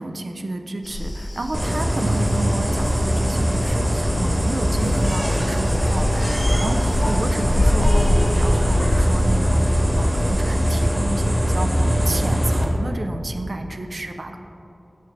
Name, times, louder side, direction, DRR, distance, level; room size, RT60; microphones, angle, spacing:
voice 1, 0.0-14.4, right 2 dB, 70° right, 6 dB, 0.4 m, -30 dB
sound 1, 0.8-10.9, left 1 dB, 55° left, 0.5 m, -26 dB
sound 2, 1.5-12.6, equal, 25° right, 1.2 m, -21 dB
sound 3, 4.8-9.8, equal, 40° left, 1.0 m, -30 dB
6.4 x 5.2 x 3.9 m, 2.9 s
wide cardioid pair, 40°, 0 cm